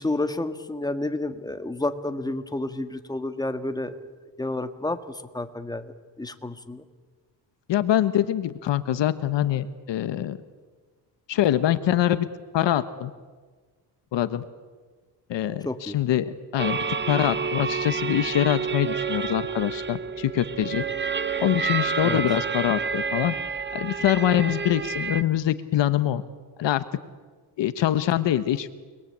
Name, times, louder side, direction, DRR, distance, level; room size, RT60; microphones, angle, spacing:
voice 1, 0.0-4.1 4.4-5.0 5.3-5.8 6.2-6.8 15.6-15.9 22.0-22.2, left 2 dB, 10° left, 8 dB, 1.7 m, -30 dB
voice 2, 7.7-10.4 11.3-12.3 12.5-13.1 14.1-14.4 15.3-16.8 17.1-20.9 21.4-23.3 23.7-26.2 26.6-26.8 27.6-28.7, left 12 dB, 80° left, 12 dB, 1.3 m, -24 dB
sound 1, 16.6-25.2, right 5 dB, 25° right, 0.9 m, -29 dB
29.5 x 21.5 x 8.7 m, 1.4 s
cardioid pair, 115°, 43 cm